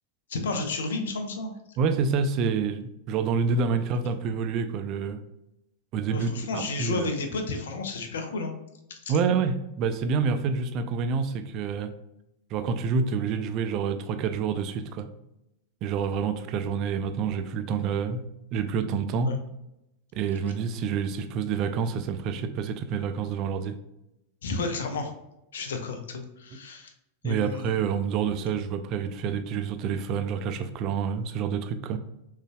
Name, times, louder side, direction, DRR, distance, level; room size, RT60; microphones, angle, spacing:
voice 1, 0.3-1.5 6.1-8.5 8.9-9.1 19.3-19.4 24.4-25.1 25.5-26.9 27.2-27.9, left 3 dB, 60° left, 5 dB, 0.8 m, -32 dB
voice 2, 1.8-5.2 5.9-7.1 9.1-11.9 12.5-15.1 15.8-18.2 18.5-19.3 20.1-23.8 27.2-32.0, right 6 dB, 40° right, 9 dB, 0.5 m, -28 dB
6.3 x 3.3 x 2.2 m, 0.87 s
figure-of-eight pair, 90°, 0 cm